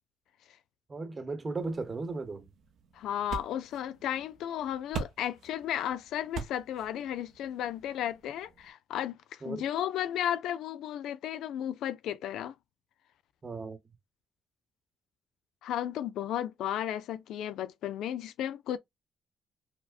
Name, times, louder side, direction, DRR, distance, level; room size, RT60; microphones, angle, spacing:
voice 1, 0.9-2.5 9.4-9.6 13.4-13.8, right 3 dB, 30° right, 0.9 m, -36 dB
sound 1, 1.6-8.7, right 6 dB, 75° right, 0.8 m, -44 dB
voice 2, 2.9-12.5 15.6-18.8, left 10 dB, 80° left, 0.3 m, -34 dB
4.8 x 2.1 x 2.4 m
cardioid pair, 90°, 0 cm